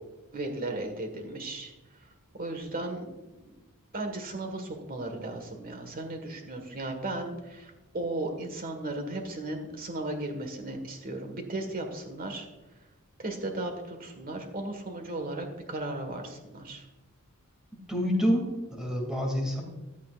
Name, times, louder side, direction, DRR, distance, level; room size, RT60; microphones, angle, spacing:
voice 1, 0.3-1.7 2.3-3.3 3.9-12.5 13.2-16.8, right 2 dB, 40° right, 4 dB, 1.7 m, -36 dB
voice 2, 17.9-19.6, equal, 5° right, 0 dB, 2.5 m, -27 dB
14.5 x 10.5 x 2.5 m, 1.1 s
head